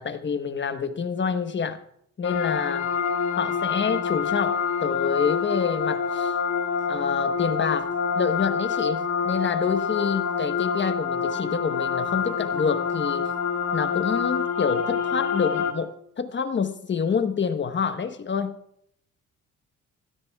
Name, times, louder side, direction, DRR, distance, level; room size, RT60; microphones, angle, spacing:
voice 1, 0.0-1.8 2.2-2.9 3.3-6.3 6.9-13.3 13.7-18.5, left 6 dB, 40° left, 1.1 m, -27 dB
sound 1, 2.2-15.7, left 6 dB, 60° left, 1.6 m, -26 dB
25.5 x 13.0 x 2.4 m
cardioid pair, 90°, 30 cm